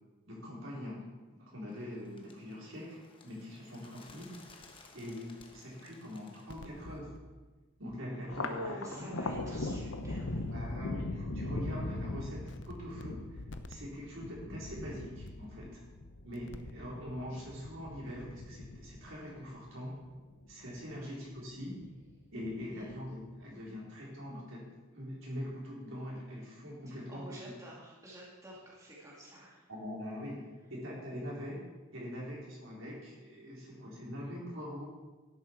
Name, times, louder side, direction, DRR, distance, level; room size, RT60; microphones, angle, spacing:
voice 1, 0.3-1.0 1.3-4.3 4.9-7.1 7.8-8.6 8.9-9.1 10.5-13.4 13.7-15.8 16.2-20.0 20.4-21.8 22.3-24.6 24.9-27.4 29.7-30.4 30.7-31.6 31.9-34.8, equal, 70° right, -4 dB, 4.2 m, -43 dB
Bird, 1.7-7.0, left 3 dB, 25° left, 1.2 m, -58 dB
sound 1, 6.5-7.2 7.9-8.0 8.3-8.4 9.3-11.0 12.0-12.1 12.5-13.0 13.4-13.8 15.3-15.4 16.4-16.8 17.1-17.3, left 1 dB, 55° left, 0.7 m, -46 dB
Thunder, 8.2-20.9 21.3-22.1 22.4-23.3, left 2 dB, 80° left, 1.0 m, -41 dB
voice 2, 8.4-10.5 21.0-21.2 22.5-23.0 26.9-29.7, right 1 dB, 15° right, -5 dB, 2.2 m, -47 dB
12.0 x 11.0 x 4.6 m, 1.2 s
head